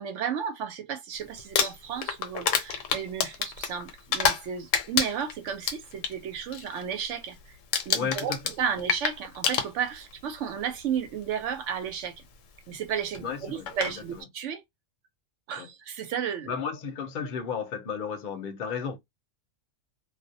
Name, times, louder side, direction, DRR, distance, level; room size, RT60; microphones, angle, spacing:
voice 1, 0.0-7.6 7.9-12.2 12.7-14.6 15.5-16.5, right 8 dB, 75° right, 0.9 m, -33 dB
Crumpling crinkling, 1.4-4.5 4.7-6.1 6.5-6.8 7.1-7.4 7.7-10.1 11.1-11.2 13.1-13.2 13.7-13.9, left 7 dB, 80° left, 1.0 m, -28 dB
voice 2, 7.9-8.4 13.2-13.7 14.0-14.2 15.6-15.7 16.5-19.0, left 6 dB, 50° left, 0.7 m, -33 dB
2.3 x 2.0 x 2.6 m
omnidirectional pair, 1.3 m